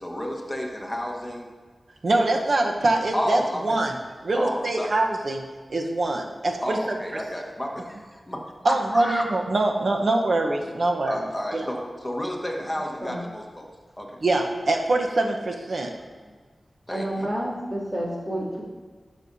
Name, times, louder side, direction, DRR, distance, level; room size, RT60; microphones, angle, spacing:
voice 1, 0.0-1.5 3.1-3.7 4.3-4.9 6.6-9.3 11.1-13.7 14.0-14.2 16.9-17.3, equal, 15° left, 0 dB, 1.3 m, -31 dB
voice 2, 2.0-3.9 4.2-5.4 5.7-6.8 8.6-11.2 11.5-11.6 14.2-15.9, right 2 dB, 65° right, 2 dB, 1.0 m, -24 dB
voice 3, 16.9-18.6, right 1 dB, 25° right, -7 dB, 2.7 m, -29 dB
12.5 x 6.4 x 2.7 m, 1.5 s
wide cardioid pair, 75°, 0 cm